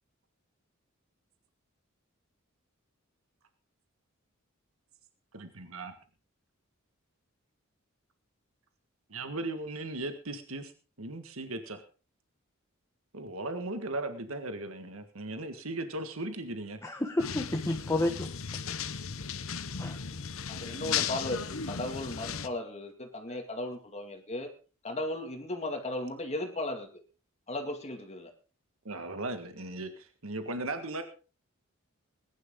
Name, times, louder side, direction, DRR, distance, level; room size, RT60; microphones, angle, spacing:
voice 1, 5.3-5.9 9.1-10.7 11.0-11.8 13.1-16.8 20.7-21.0 23.3-23.4 28.8-31.0, right 2 dB, 85° right, 1.7 m, -37 dB
voice 2, 16.8-18.3 18.7-18.8 19.8-20.0, left 1 dB, 15° left, 1.4 m, -31 dB
sound 1, 17.2-22.5, left 7 dB, 75° left, 1.0 m, -36 dB
voice 3, 20.5-24.5 24.8-26.9 27.5-28.3, left 1 dB, 30° left, 2.2 m, -36 dB
20.5 x 11.0 x 3.8 m
head